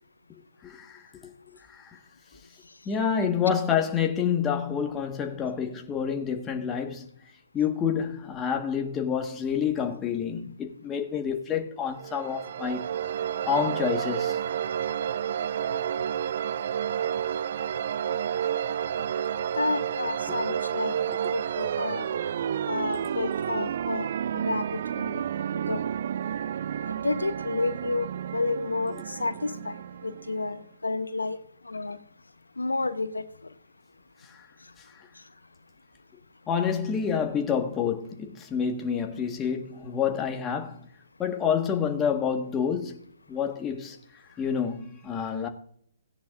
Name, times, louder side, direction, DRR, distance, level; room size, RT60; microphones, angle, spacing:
voice 1, 0.6-2.0 2.8-7.1 7.5-12.9 13.4-14.4 20.3-20.6 21.2-21.3 29.0-29.1 36.5-40.8 41.2-43.0 43.3-44.0 44.4-45.5, left 7 dB, 15° left, 1.5 m, -28 dB
sound 1, 12.0-30.6, right 9 dB, 55° right, 0.4 m, -30 dB
voice 2, 19.6-21.0 21.3-22.1 22.7-24.1 24.3-24.6 25.0-25.2 25.7-25.8 27.0-28.9 29.2-29.8 30.0-31.4 31.7-32.0 32.6-33.2, left 3 dB, 85° left, 0.8 m, -30 dB
17.5 x 10.0 x 2.5 m
figure-of-eight pair, 130°, 0 cm